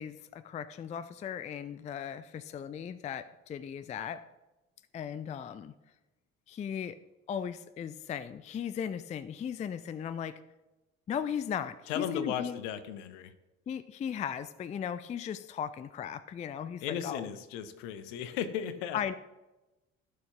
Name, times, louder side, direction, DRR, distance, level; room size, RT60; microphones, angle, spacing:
voice 1, 0.0-4.2 4.9-5.7 6.5-7.0 7.3-10.4 11.1-12.6 13.7-17.3 18.9-19.1, left 8 dB, 20° left, 14 dB, 0.4 m, -37 dB
voice 2, 11.9-13.3 16.8-19.1, left 9 dB, 65° left, 12 dB, 0.9 m, -36 dB
15.0 x 6.6 x 2.9 m, 1.0 s
figure-of-eight pair, 50°, 41 cm